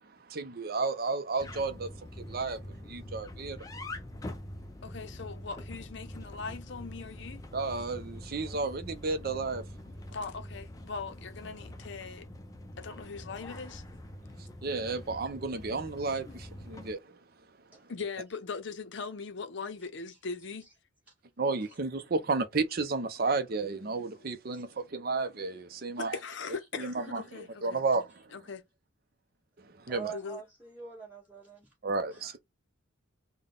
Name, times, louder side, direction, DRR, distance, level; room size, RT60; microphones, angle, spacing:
voice 1, 0.3-1.9 2.3-2.6 2.9-3.6 7.5-9.6 14.6-17.2 21.4-26.2 26.8-28.2 29.8-30.1 31.8-32.4, right 3 dB, 45° right, 0.5 m, -32 dB
sound 1, 1.4-16.9, left 1 dB, 15° left, 0.5 m, -45 dB
voice 2, 4.8-7.4 10.1-12.3 12.8-13.8 17.9-20.7 24.2-24.3 26.0-27.8 28.3-28.6 30.1-30.4, left 4 dB, 60° left, 0.6 m, -40 dB
voice 3, 29.9-31.7 32.1-32.4, right 6 dB, 10° right, 1.8 m, -45 dB
3.7 x 2.2 x 3.6 m
head